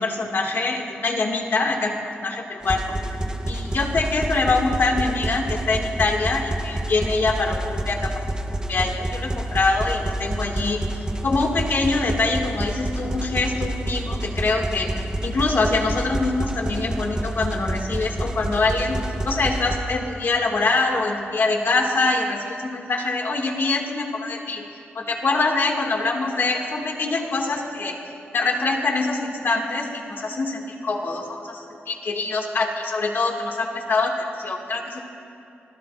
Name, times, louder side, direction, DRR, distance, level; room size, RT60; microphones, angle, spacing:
voice 1, 0.0-3.0 3.5-8.2 8.7-10.8 11.2-14.9 15.2-19.0 19.2-24.6 24.9-28.0 28.3-35.0, left 3 dB, 60° left, 1 dB, 2.1 m, -24 dB
sound 1, 2.6-19.8, right 1 dB, 20° right, 0.9 m, -28 dB
26.5 x 20.0 x 2.5 m, 2.6 s
wide cardioid pair, 105°, 4 cm